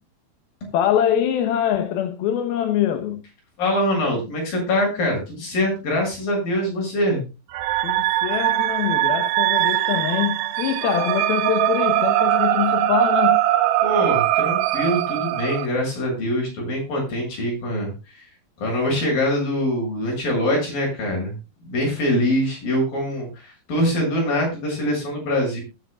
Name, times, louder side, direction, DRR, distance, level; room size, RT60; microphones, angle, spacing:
voice 1, 0.7-3.2 7.8-13.4, left 10 dB, 90° left, 3.0 m, -24 dB
voice 2, 3.6-7.2 13.8-17.9 18.2-18.3 18.6-21.3 21.6-25.6, left 1 dB, 70° left, 9.3 m, -23 dB
sound 1, 7.5-15.7, right 14 dB, 85° right, 2.9 m, -21 dB
20.5 x 9.8 x 2.4 m
omnidirectional pair, 4.2 m